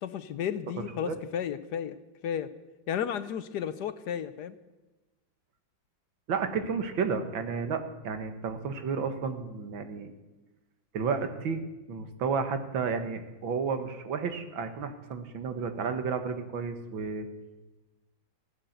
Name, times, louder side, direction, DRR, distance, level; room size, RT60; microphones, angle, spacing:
voice 1, 0.0-2.0 2.2-2.5 2.9-4.5, left 9 dB, 70° left, 13 dB, 1.2 m, -33 dB
voice 2, 6.3-10.1 10.9-11.6 11.9-17.3, right 5 dB, 90° right, 8 dB, 2.1 m, -32 dB
15.0 x 11.5 x 8.0 m, 1.1 s
omnidirectional pair, 2.1 m